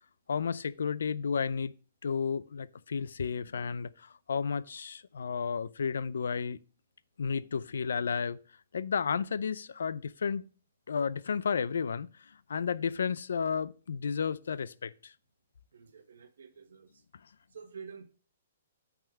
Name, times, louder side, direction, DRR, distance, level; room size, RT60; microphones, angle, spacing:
voice 1, 0.3-1.7 2.0-6.6 7.2-8.4 8.7-10.5 10.9-15.1, left 6 dB, 85° left, 0.4 m, -32 dB
voice 2, 15.7-17.0 17.5-18.0, right 6 dB, 80° right, 1.3 m, -49 dB
8.9 x 3.6 x 6.2 m
hypercardioid pair, 160°, 0 cm